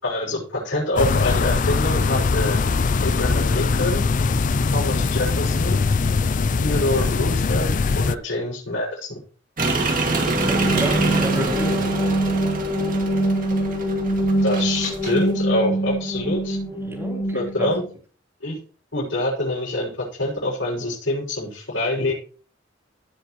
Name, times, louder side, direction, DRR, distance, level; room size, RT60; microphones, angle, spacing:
voice 1, 0.0-2.6 3.0-4.0 4.7-5.8 6.6-9.2 14.4-16.6 17.3-17.8 18.4-18.5 18.9-22.1, left 1 dB, 85° left, -8 dB, 6.2 m, -25 dB
sound 1, 1.0-8.1, left 4 dB, 45° left, 0.4 m, -21 dB
sound 2, 9.6-15.3, right 3 dB, 45° right, 2.3 m, -26 dB
sound 3, 10.1-17.8, right 1 dB, 25° left, 4.5 m, -24 dB
voice 2, 10.3-11.9 16.8-17.7, equal, 15° right, -2 dB, 3.6 m, -30 dB
17.0 x 7.5 x 3.1 m, 0.38 s
head